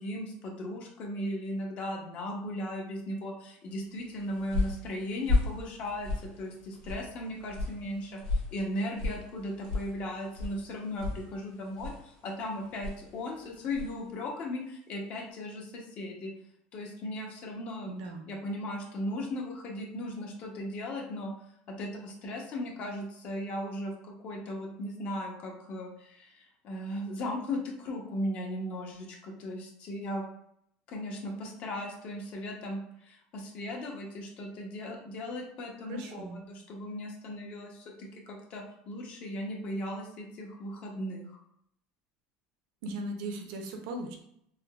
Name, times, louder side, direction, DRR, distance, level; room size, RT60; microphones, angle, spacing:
voice 1, 0.0-6.1 6.4-16.3 16.7-17.9 18.3-21.3 21.7-30.2 30.9-37.9 38.3-41.4, left 1 dB, 45° left, 1 dB, 0.7 m, -37 dB
sound 1, 4.0-14.1, left 3 dB, 75° left, 0.9 m, -35 dB
voice 2, 17.9-18.3 35.9-36.4 42.8-44.2, right 1 dB, 75° right, 3 dB, 0.6 m, -38 dB
3.6 x 2.1 x 2.3 m, 0.71 s
supercardioid pair, 135°, 3 cm